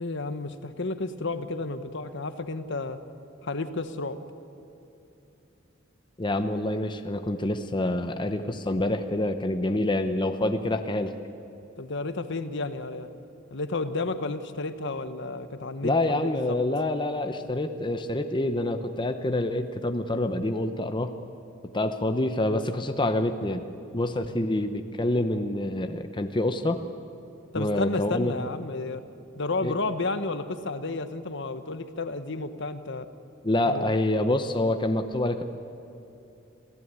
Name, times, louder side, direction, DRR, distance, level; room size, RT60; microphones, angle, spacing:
voice 1, 0.0-3.0 3.4-4.2 11.8-13.1 13.5-16.6 27.5-29.0 29.4-33.1 33.7-33.9, left 3 dB, 65° left, 10 dB, 1.2 m, -32 dB
voice 2, 6.2-11.1 15.8-21.1 21.7-23.6 23.9-26.8 27.5-28.3 29.6-29.7 33.4-35.4, left 1 dB, 25° left, 7 dB, 0.9 m, -27 dB
27.0 x 16.0 x 9.7 m, 2.8 s
head